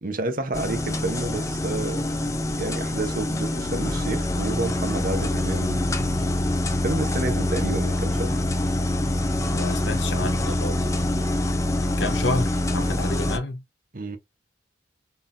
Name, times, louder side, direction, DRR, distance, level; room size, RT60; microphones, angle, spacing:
voice 1, 0.0-2.1 2.5-5.9 6.8-8.3 13.9-14.2, right 2 dB, 45° right, 0.9 m, -30 dB
sound 1, 0.5-13.4, left 1 dB, 15° left, 0.6 m, -25 dB
voice 2, 9.5-11.1 11.8-13.6, left 2 dB, 75° left, 1.0 m, -30 dB
4.2 x 3.7 x 2.6 m
head